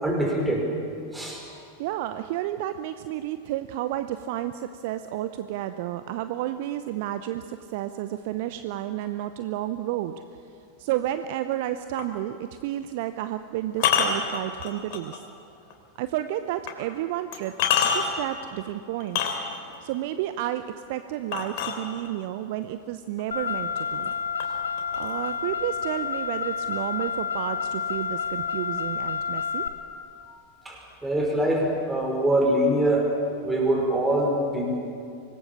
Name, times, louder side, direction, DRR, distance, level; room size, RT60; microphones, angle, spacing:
voice 1, 0.0-0.7 1.1-1.4 30.3-30.4 30.7-33.1 33.4-34.8, right 1 dB, 10° right, 0 dB, 5.2 m, -24 dB
voice 2, 1.8-10.1 10.8-15.2 16.0-19.3 19.8-20.6 20.9-24.1 25.0-29.7, right 13 dB, 50° right, 11 dB, 0.7 m, -31 dB
sound 1, 12.0-12.2 13.7-15.2 15.7-15.8 16.7-16.8 17.3-18.3 19.0-19.8 21.3-22.3 23.2-23.3 23.7-24.1 24.4-25.4, left 8 dB, 45° left, 3.4 m, -26 dB
Car, 23.3-29.7, left 6 dB, 75° left, 1.2 m, -29 dB
25.0 x 19.0 x 7.1 m, 2.6 s
figure-of-eight pair, 90°, 0 cm